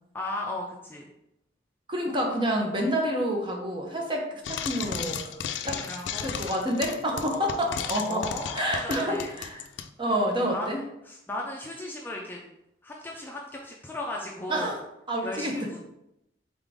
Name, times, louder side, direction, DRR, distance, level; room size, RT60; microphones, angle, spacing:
voice 1, 0.1-1.1 5.6-6.3 7.2-9.3 10.5-10.7 11.0-12.4 12.8-14.7 15.2-15.8, left 1 dB, 10° left, -2 dB, 0.4 m, -36 dB
voice 2, 1.9-5.3 5.6-5.8 6.2-8.2 8.5-9.6 10.0-10.8 14.5-14.8 15.1-15.7, equal, 25° right, 0 dB, 0.8 m, -28 dB
Frying (food), 4.4-9.9, left 8 dB, 85° left, 0.3 m, -34 dB
3.9 x 3.7 x 3.4 m, 0.84 s
head